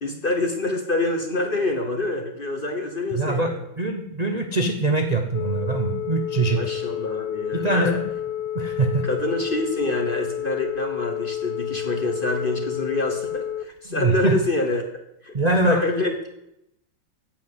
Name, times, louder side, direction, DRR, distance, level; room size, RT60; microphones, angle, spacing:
voice 1, 0.0-3.6 6.6-8.0 9.0-14.8 15.2-15.3 15.6-16.3, left 2 dB, 35° left, 5 dB, 0.9 m, -26 dB
voice 2, 3.1-6.6 7.5-7.9 8.5-9.0 13.9-14.4 15.3-15.8, right 2 dB, 45° right, 4 dB, 0.5 m, -23 dB
Telephone, 5.3-13.7, left 11 dB, 75° left, 0.9 m, -30 dB
8.3 x 7.7 x 7.9 m, 0.85 s
omnidirectional pair, 2.1 m